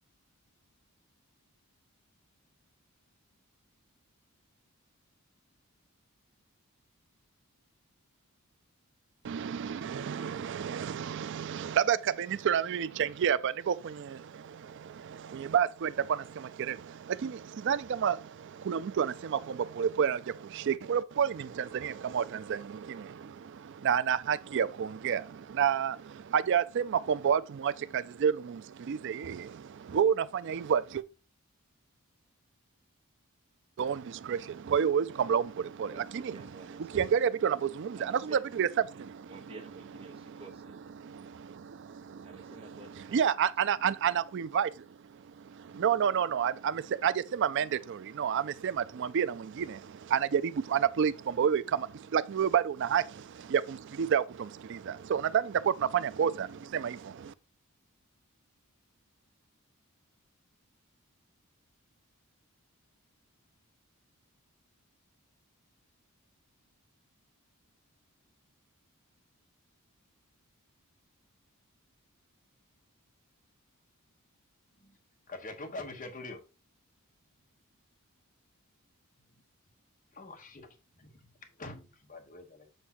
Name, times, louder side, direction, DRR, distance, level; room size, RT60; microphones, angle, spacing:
voice 1, 9.2-31.0 33.8-39.4 40.1-40.4 41.0-42.5 43.1-57.3, right 8 dB, 55° right, 0.3 m, -30 dB
voice 2, 35.9-37.3 38.0-38.6 39.3-40.8 42.2-44.1, right 2 dB, 25° right, 1.2 m, -51 dB
voice 3, 75.3-76.4 80.1-80.7 81.0-81.1 81.6-82.7, left 2 dB, 35° left, 1.1 m, -44 dB
8.0 x 2.7 x 5.7 m
head